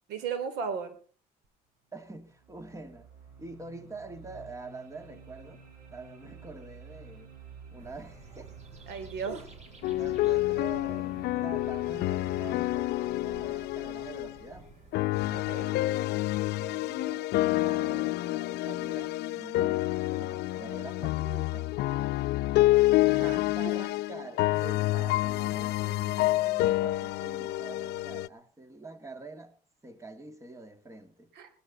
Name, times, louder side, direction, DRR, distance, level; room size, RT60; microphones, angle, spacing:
voice 1, 0.1-1.0 8.9-9.4 15.3-15.7 23.0-23.4 31.3-31.5, right 6 dB, 90° right, 3.1 m, -35 dB
sound 1, 1.4-1.5 2.1-13.4, right 5 dB, 60° right, 7.4 m, -51 dB
voice 2, 1.9-3.1 3.4-5.6 5.9-7.3 7.7-8.5 9.2-9.5 9.9-14.7 16.6-21.7 23.5-29.6 29.8-31.3, right 3 dB, 20° right, 2.2 m, -46 dB
sound 2, 7.8-15.5, right 3 dB, 40° right, 4.3 m, -53 dB
sound 3, 9.8-14.3 14.9-28.3, left 17 dB, 80° left, 0.6 m, -28 dB
19.0 x 13.0 x 4.0 m
cardioid pair, 110°, 17 cm